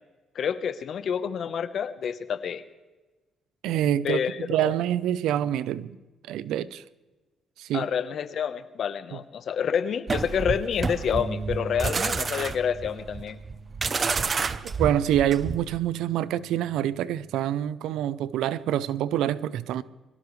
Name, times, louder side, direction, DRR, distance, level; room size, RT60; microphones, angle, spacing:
voice 1, 0.3-2.6 4.0-4.8 7.7-13.4, left 7 dB, 60° left, 1.1 m, -28 dB
voice 2, 3.6-6.0 6.3-6.8 7.6-7.9 9.1-9.2 14.3-19.8, right 11 dB, 90° right, 0.6 m, -26 dB
sound 1, 10.1-15.8, right 4 dB, 35° right, 0.8 m, -29 dB
Bass guitar, 11.1-17.3, right 4 dB, 65° right, 2.5 m, -42 dB
23.5 x 16.5 x 3.3 m
cardioid pair, 90°, 0 cm